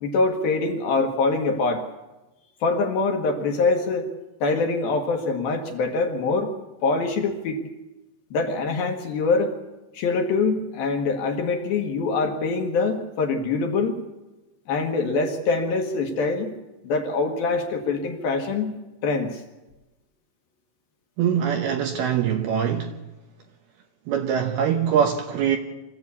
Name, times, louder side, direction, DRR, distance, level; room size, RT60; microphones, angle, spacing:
voice 1, 0.0-1.9 2.6-4.1 4.4-6.5 6.8-7.6 8.3-9.6 9.9-14.0 14.7-16.5 16.8-18.7 19.0-19.4, left 3 dB, 60° left, 2.9 m, -24 dB
voice 2, 21.2-22.9 24.1-25.6, right 8 dB, 70° right, 2.5 m, -23 dB
25.5 x 14.5 x 8.5 m
omnidirectional pair, 5.6 m